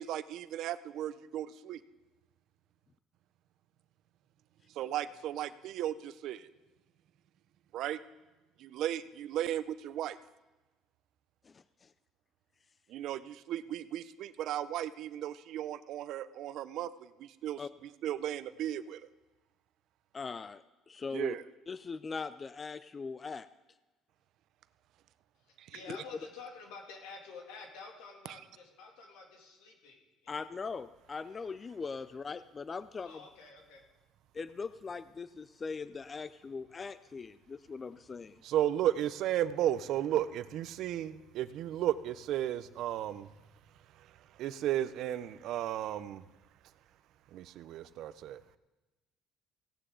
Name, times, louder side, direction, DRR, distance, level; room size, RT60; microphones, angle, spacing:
voice 1, 0.0-1.8 4.8-6.5 7.7-8.0 8.6-10.2 12.9-16.9 17.2-17.6 18.0-19.0 21.1-21.4 25.6-25.7 38.4-43.3 44.4-46.2 47.3-48.4, right 12 dB, 65° right, 14 dB, 0.5 m, -34 dB
voice 2, 11.4-11.9 17.6-17.7 20.1-21.3 21.7-23.5 25.9-26.0 30.3-33.2 34.3-38.4, left 4 dB, 25° left, 14 dB, 0.3 m, -40 dB
voice 3, 25.4-30.5 33.0-33.8, left 4 dB, 85° left, 1 dB, 2.5 m, -49 dB
16.5 x 9.8 x 3.8 m, 1.1 s
cardioid pair, 115°, 0 cm